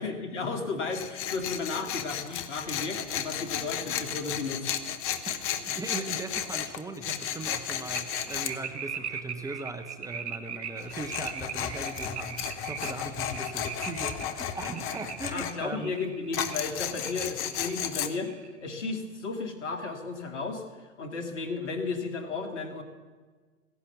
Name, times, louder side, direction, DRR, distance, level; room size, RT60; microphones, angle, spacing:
voice 1, 0.0-4.7 15.3-22.8, left 4 dB, 70° left, 5 dB, 2.4 m, -34 dB
Tools, 0.9-8.5 10.8-15.5 16.3-18.1, left 9 dB, 35° left, 1.1 m, -34 dB
voice 2, 5.6-15.9, right 2 dB, 10° right, 7 dB, 1.0 m, -39 dB
sound 1, 7.9-16.7 17.0-18.5, right 7 dB, 65° right, 1.2 m, -40 dB
16.0 x 11.0 x 7.0 m, 1.4 s
figure-of-eight pair, 95°, 37 cm